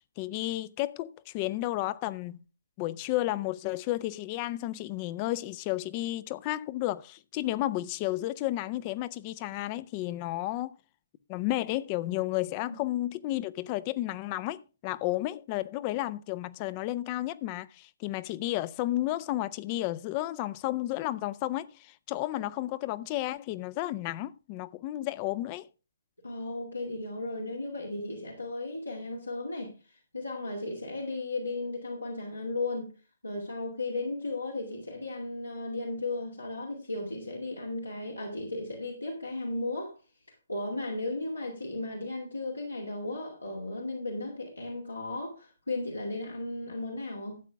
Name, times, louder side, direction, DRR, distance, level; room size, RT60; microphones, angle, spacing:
voice 1, 0.2-2.4 2.8-10.8 11.3-25.7, left 16 dB, 25° left, 0.5 m, -32 dB
voice 2, 26.2-32.9 33.2-40.0 40.5-47.4, left 2 dB, 85° left, 2.4 m, -35 dB
12.5 x 8.2 x 3.4 m
figure-of-eight pair, 135°, 0 cm